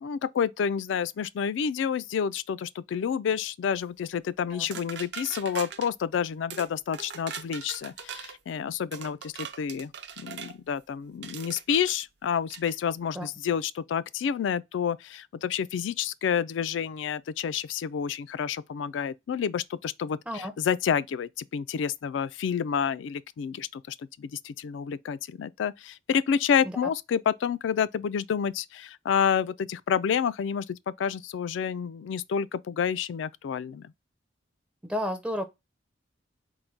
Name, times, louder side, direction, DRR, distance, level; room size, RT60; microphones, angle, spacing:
voice 1, 0.0-33.9, left 7 dB, 90° left, 0.3 m, -29 dB
sound 1, 4.7-5.9 6.5-6.7 6.9-8.4 8.9-10.5 11.2-11.9 12.5-12.7, right 7 dB, 65° right, 0.6 m, -40 dB
voice 2, 34.8-35.4, equal, 5° right, 0.4 m, -31 dB
3.9 x 2.1 x 4.4 m
head